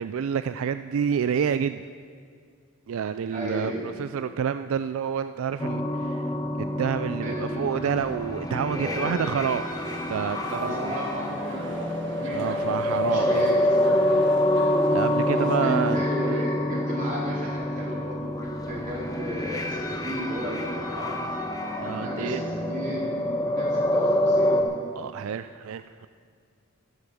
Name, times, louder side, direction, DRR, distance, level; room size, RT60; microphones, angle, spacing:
voice 1, 0.0-1.8 2.9-6.3 6.6-10.9 12.3-13.5 14.9-16.5 21.8-22.4 25.0-26.1, right 7 dB, 75° right, 11 dB, 0.4 m, -29 dB
voice 2, 3.3-3.8 7.2-7.7 8.6-9.1 10.5-14.0 15.2-21.2 21.9-24.7, equal, 40° right, -4 dB, 3.6 m, -34 dB
sound 1, 5.6-24.6, left 1 dB, 20° left, 1.1 m, -27 dB
sound 2, 9.5-16.0, right 2 dB, 60° right, 1.3 m, -42 dB
13.0 x 12.0 x 6.1 m, 2.2 s
head